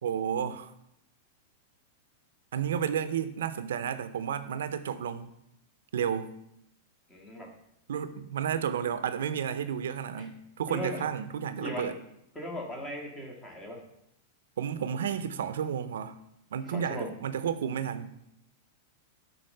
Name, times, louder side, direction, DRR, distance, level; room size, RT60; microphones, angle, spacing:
voice 1, 0.0-0.7 2.5-5.3 5.9-6.3 7.9-12.0 14.6-16.2 16.5-18.1, right 8 dB, 90° right, 12 dB, 0.6 m, -32 dB
voice 2, 7.1-7.5 10.2-10.3 10.7-11.1 11.6-12.0 12.3-13.8 16.6-17.1, left 1 dB, 15° left, 2 dB, 1.6 m, -38 dB
8.5 x 4.2 x 6.5 m, 0.78 s
supercardioid pair, 155°, 0 cm